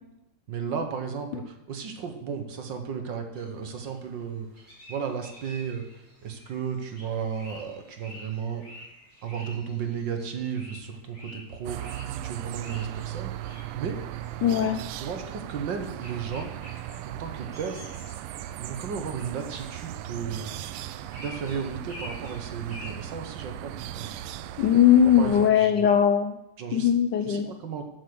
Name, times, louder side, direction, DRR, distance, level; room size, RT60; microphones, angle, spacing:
voice 1, 0.5-4.5 4.9-8.7 9.2-14.0 15.0-16.5 17.0-17.8 18.6-20.5 21.2-24.1 25.2-25.9 26.6-26.9 27.2-27.8, right 6 dB, 60° right, 5 dB, 1.7 m, -34 dB
sound 1, 3.3-22.9, left 1 dB, 10° right, 5.3 m, -49 dB
sound 2, 11.6-25.5, right 12 dB, 85° right, 1.5 m, -38 dB
voice 2, 14.4-14.8 24.6-26.3 26.7-27.5, left 9 dB, 70° left, 8 dB, 1.0 m, -20 dB
12.5 x 7.2 x 6.1 m, 0.89 s
omnidirectional pair, 2.4 m